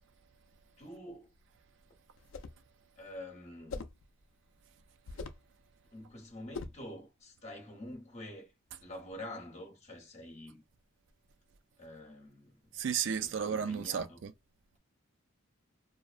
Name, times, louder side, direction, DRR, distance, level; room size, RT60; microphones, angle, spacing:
voice 1, 0.8-1.3 3.0-3.9 5.9-8.5 8.8-10.6 11.8-12.7 13.2-14.2, left 1 dB, 30° left, 0.9 m, -47 dB
sound 1, 2.2-2.6 3.7-4.0 5.1-5.5 6.5-6.9, left 4 dB, 70° left, 0.3 m, -42 dB
voice 2, 12.7-14.3, right 7 dB, 60° right, 0.3 m, -33 dB
2.5 x 2.0 x 2.4 m
head